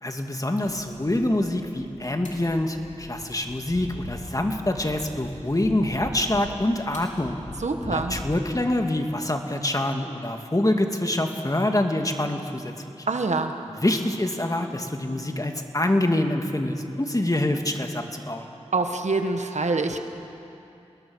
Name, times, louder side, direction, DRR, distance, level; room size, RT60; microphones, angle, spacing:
voice 1, 0.0-7.4 7.8-13.1 13.8-18.5, left 1 dB, 30° left, 4 dB, 2.2 m, -25 dB
sound 1, 0.6-8.5, left 2 dB, 85° left, 3.5 m, -42 dB
voice 2, 7.6-8.2 13.1-13.5 18.7-20.0, right 3 dB, 70° right, 6 dB, 1.5 m, -25 dB
27.5 x 20.0 x 6.4 m, 2.8 s
cardioid pair, 40°, 12 cm